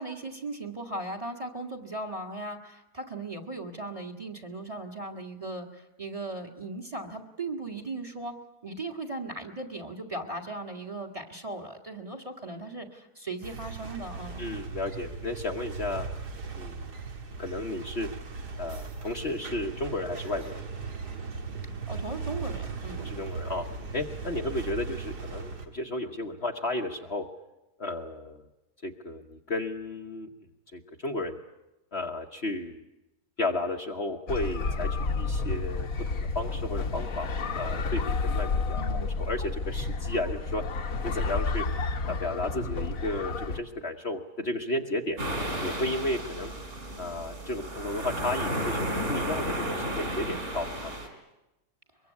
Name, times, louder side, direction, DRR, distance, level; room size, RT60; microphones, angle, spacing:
voice 1, 0.0-8.3 8.6-14.5 21.9-23.2 38.7-39.1, right 2 dB, 20° right, 4 dB, 1.9 m, -38 dB
sound 1, 13.4-25.7, right 4 dB, 75° right, 2.5 m, -38 dB
voice 2, 14.4-16.1 16.5-16.9 17.4-18.1 18.6-20.6 23.0-23.6 23.9-27.2 27.8-28.4 28.8-30.3 30.7-31.4 31.9-32.8 33.4-35.9 36.2-37.3 37.5-38.8 39.2-40.6 41.0-41.6 42.1-45.2 45.6-46.5 47.0-50.9, left 2 dB, 45° left, 3 dB, 1.3 m, -33 dB
sound 2, 34.3-43.6, left 3 dB, 60° left, 1.6 m, -30 dB
sound 3, 45.2-51.1, right 1 dB, 45° right, 4.2 m, -33 dB
23.0 x 23.0 x 8.4 m, 1.0 s
omnidirectional pair, 1.7 m